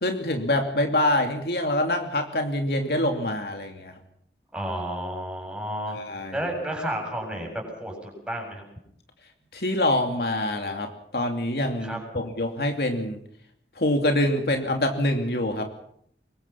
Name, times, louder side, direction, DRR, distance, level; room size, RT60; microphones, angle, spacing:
voice 1, 0.0-3.9 5.9-6.4 9.5-13.2 13.8-15.7, left 1 dB, 60° left, 4 dB, 2.8 m, -25 dB
voice 2, 4.5-6.0 6.3-8.6 11.8-12.2, equal, 5° right, 1 dB, 7.7 m, -32 dB
24.5 x 22.5 x 5.9 m, 0.68 s
head